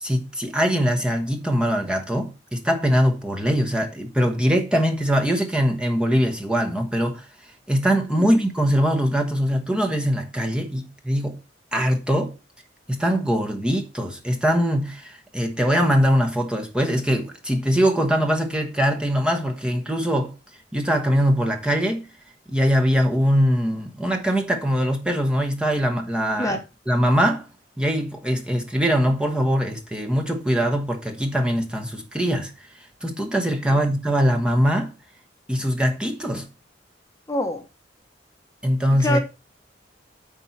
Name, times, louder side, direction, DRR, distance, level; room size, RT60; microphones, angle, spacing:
voice 1, 0.0-7.2 7.7-11.4 11.7-12.3 12.9-20.3 20.7-22.1 22.5-26.6 26.9-27.5 27.8-32.5 33.0-34.9 35.5-36.5 38.6-39.2, equal, 5° right, 1.2 m, -22 dB
voice 2, 37.3-37.6 39.0-39.2, left 1 dB, 20° left, 1.1 m, -25 dB
8.7 x 4.6 x 5.7 m
head